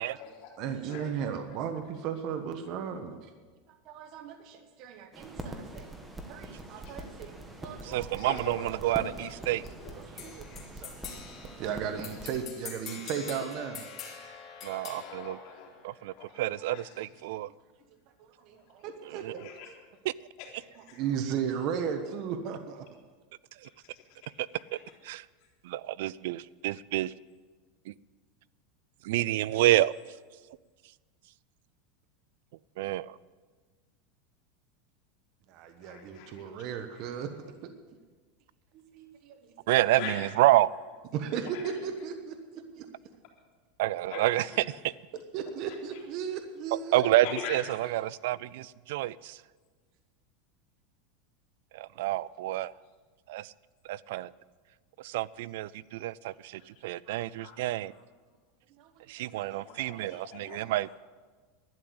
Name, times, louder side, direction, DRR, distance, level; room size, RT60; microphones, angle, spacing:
voice 1, 0.0-0.5 0.9-1.6 6.8-7.0 8.2-10.6 11.9-12.0 13.4-13.7 14.9-15.7 16.2-17.4 18.5-19.8 20.4-20.5 20.7-21.7 21.9-22.0 23.8-24.0 24.7-24.8 25.4-25.5 35.8-37.1 40.0-41.0 41.4-42.1 44.1-45.0 45.4-46.0 47.0-48.3 56.6-56.8 57.2-58.0 59.3-61.0, left 6 dB, 55° left, -3 dB, 3.8 m, -45 dB
voice 2, 0.6-3.3 3.8-5.9 6.3-8.2 9.5-9.6 9.9-11.2 11.6-13.8 16.3-16.4 18.2-19.4 20.9-22.9 35.5-37.3 37.6-37.7 38.7-39.5 41.1-42.9 45.3-47.0 57.1-57.2 58.8-59.0 59.4-60.2, right 7 dB, 50° right, 7 dB, 1.1 m, -36 dB
sound 1, 5.1-12.4, right 1 dB, 10° right, 1.4 m, -44 dB
voice 3, 7.8-9.6 14.6-15.4 15.8-17.5 19.0-19.5 25.1-25.2 25.6-27.1 27.9-28.0 29.0-30.0 32.8-33.2 39.7-40.7 43.8-44.4 46.9-49.4 51.7-52.7 53.3-53.5 53.9-54.3 55.0-57.9 59.1-60.9, right 15 dB, 70° right, 21 dB, 0.4 m, -28 dB
sound 2, 10.2-16.2, left 6 dB, 35° left, 2.4 m, -45 dB
12.0 x 10.0 x 7.9 m, 1.4 s
supercardioid pair, 145°, 0 cm